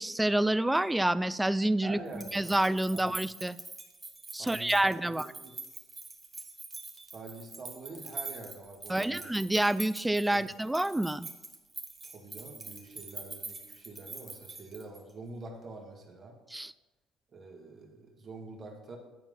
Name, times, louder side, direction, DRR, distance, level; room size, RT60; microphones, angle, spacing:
voice 1, 0.0-2.0 2.3-3.6 4.3-5.3 8.9-11.3 16.5-16.7, right 1 dB, 10° right, 16 dB, 0.3 m, -28 dB
voice 2, 1.8-2.6 2.9-3.0 4.3-5.5 7.1-9.3 10.3-10.5 12.1-16.3 17.3-19.0, right 3 dB, 45° right, 1 dB, 2.0 m, -46 dB
sound 1, 2.1-15.1, right 3 dB, 25° right, 1.4 m, -44 dB
9.6 x 4.6 x 5.5 m, 1.1 s
hypercardioid pair, 65°, 0 cm